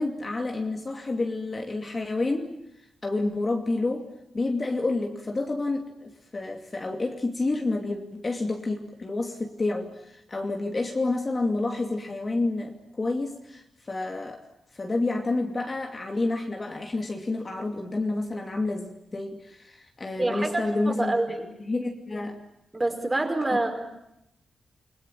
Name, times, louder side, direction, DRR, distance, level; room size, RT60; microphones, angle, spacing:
voice 1, 0.0-2.5 3.0-4.1 4.3-14.4 14.7-21.2 21.6-22.4, left 2 dB, 25° left, 3 dB, 2.6 m, -29 dB
voice 2, 20.2-21.5 22.7-23.8, right 2 dB, 15° right, 5 dB, 4.9 m, -27 dB
29.5 x 22.5 x 9.0 m, 0.82 s
wide cardioid pair, 170°, 0 cm